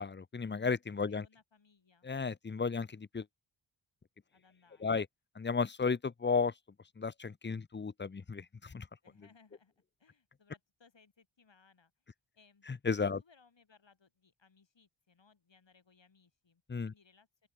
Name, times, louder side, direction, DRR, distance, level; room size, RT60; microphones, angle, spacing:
voice 1, 0.0-1.2 2.0-3.2 4.8-5.1 5.4-6.5 7.0-8.9 12.7-13.2 16.7-16.9, left 5 dB, 25° left, 0.6 m, -34 dB
voice 2, 1.1-2.1 4.3-5.0 9.0-9.7 10.0-12.1 12.3-12.7 13.0-17.5, left 5 dB, 65° left, 7.8 m, -66 dB
open air
wide cardioid pair, 115°, 48 cm